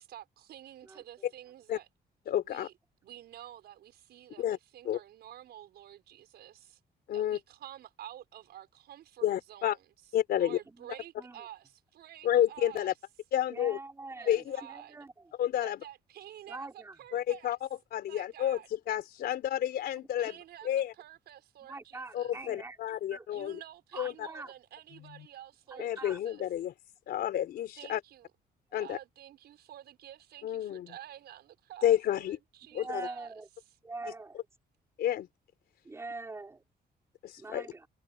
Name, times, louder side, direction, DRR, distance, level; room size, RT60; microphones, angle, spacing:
voice 1, 0.0-1.9 2.4-2.7 3.0-6.8 7.1-9.8 10.3-12.9 14.1-15.0 15.6-17.5 18.0-18.7 20.2-20.7 21.0-22.3 23.3-26.4 27.7-28.3 28.7-33.3, right 12 dB, 80° right, 5.8 m, -50 dB
voice 2, 2.3-2.7 4.4-4.6 4.9-5.0 7.1-7.4 9.2-9.8 10.1-10.6 12.2-12.9 13.3-13.8 14.3-14.6 15.4-15.8 17.1-20.3 20.6-20.9 22.1-23.6 24.0-24.3 25.0-25.3 25.8-26.7 27.1-28.0 28.7-29.0 30.4-31.0 31.8-32.4 32.7-33.1 35.0-35.3 37.2-37.6, left 11 dB, 75° left, 3.8 m, -30 dB
voice 3, 10.7-11.5 13.5-15.3 16.5-17.0 21.7-22.8 23.1-23.4 23.9-24.5 25.7-26.2 32.7-33.5 33.8-34.5 35.8-36.6 37.4-37.9, right 3 dB, 15° right, 5.7 m, -44 dB
cardioid pair, 160°, 17 cm